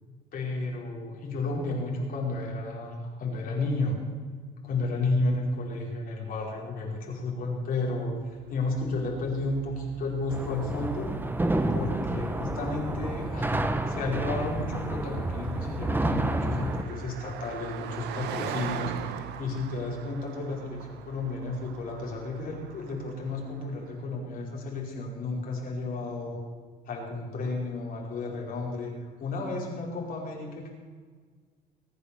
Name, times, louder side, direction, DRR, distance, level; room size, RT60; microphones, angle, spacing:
voice 1, 0.3-4.0 4.6-11.1 11.7-13.5 13.9-26.4 26.9-28.9 29.2-30.7, left 2 dB, 55° left, -1 dB, 4.9 m, -32 dB
Car passing by, 8.3-24.0, right 9 dB, 80° right, 1.3 m, -42 dB
sound 1, 10.3-16.8, right 1 dB, 10° right, 1.3 m, -29 dB
21.5 x 8.8 x 7.1 m, 1.6 s
cardioid pair, 110°, 17 cm